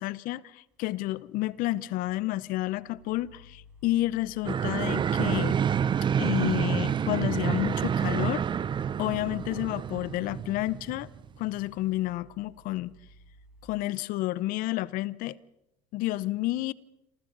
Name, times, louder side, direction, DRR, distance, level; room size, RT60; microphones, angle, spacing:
voice 1, 0.0-5.6 6.2-8.4 9.0-11.1 11.4-12.9 13.6-15.4 15.9-16.7, left 17 dB, 55° left, 0.9 m, -30 dB
sound 1, 0.8-13.7, equal, 5° right, 5.2 m, -57 dB
sound 2, 4.4-11.6, right 8 dB, 30° right, 0.7 m, -28 dB
27.5 x 27.5 x 4.1 m
hypercardioid pair, 90°, 17 cm